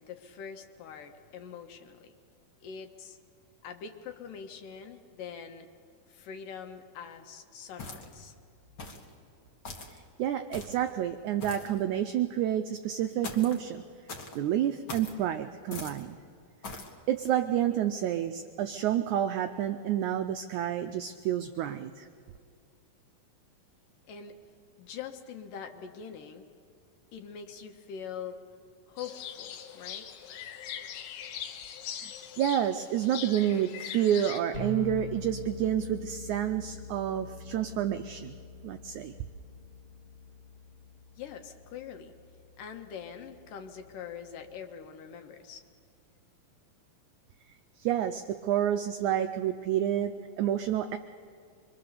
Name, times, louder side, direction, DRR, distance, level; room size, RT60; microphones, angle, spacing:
voice 1, 0.0-2.1 2.6-3.2 3.6-5.7 6.1-8.4 24.1-24.4 24.8-26.5 27.1-28.4 28.9-30.1 41.2-42.1 42.6-45.6, left 7 dB, 70° left, 6 dB, 2.7 m, -43 dB
sound 1, 7.8-8.3 8.8-9.1 9.6-10.0 10.5-10.9 11.4-11.8 13.2-13.6 14.1-14.4 14.9-15.2 15.7-16.0 16.6-16.9, left 3 dB, 40° left, 1.8 m, -41 dB
voice 2, 10.2-13.8 14.3-16.2 17.1-22.1 32.0-32.1 32.4-39.1 47.8-51.0, right 10 dB, 85° right, 8 dB, 1.7 m, -29 dB
sound 2, 29.0-34.4, left 9 dB, 90° left, 3.1 m, -41 dB
sound 3, 34.5-44.6, left 2 dB, 20° left, 1.5 m, -44 dB
24.5 x 24.0 x 6.8 m, 2.3 s
omnidirectional pair, 4.2 m